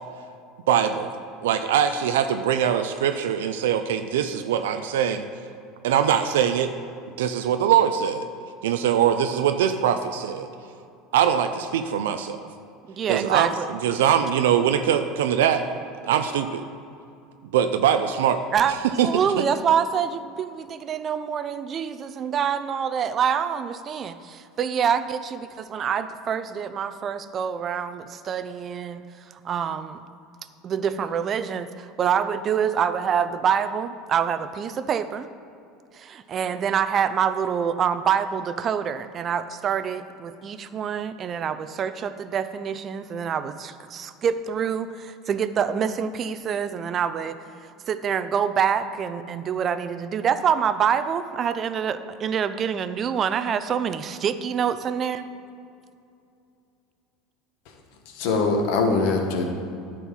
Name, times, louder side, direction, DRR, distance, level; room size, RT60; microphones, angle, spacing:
voice 1, 0.7-1.1 1.4-5.3 5.8-6.7 7.2-8.3 8.6-10.5 11.1-12.4 13.1-15.7 16.0-16.6 17.4-18.4 19.0-19.1 19.4-19.5, right 9 dB, 85° right, 8 dB, 0.4 m, -22 dB
voice 2, 12.9-13.7 18.5-18.7 19.0-29.0 29.4-30.0 30.6-35.3 35.9-47.4 47.9-55.3, right 7 dB, 40° right, 12 dB, 0.6 m, -26 dB
voice 3, 58.1-59.4, left 3 dB, 70° left, 3 dB, 1.5 m, -22 dB
10.0 x 4.5 x 7.3 m, 2.5 s
supercardioid pair, 100°, 0 cm